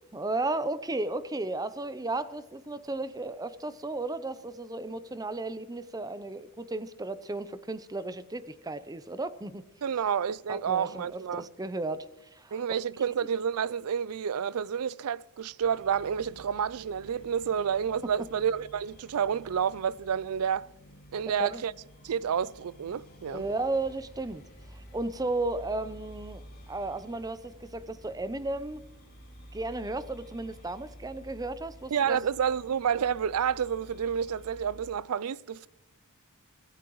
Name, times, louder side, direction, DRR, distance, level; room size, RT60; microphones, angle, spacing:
voice 1, 0.0-9.6 10.5-12.1 12.3-12.6 21.4-21.6 23.3-24.4 24.7-28.8 29.5-32.2, right 2 dB, 15° right, 0.7 m, -34 dB
voice 2, 9.8-11.5 12.5-20.7 21.1-21.7 22.0-23.5 31.9-35.7, right 7 dB, 75° right, 0.4 m, -29 dB
sound 1, 15.6-34.9, equal, 45° left, 3.4 m, -51 dB
24.5 x 16.5 x 3.1 m
head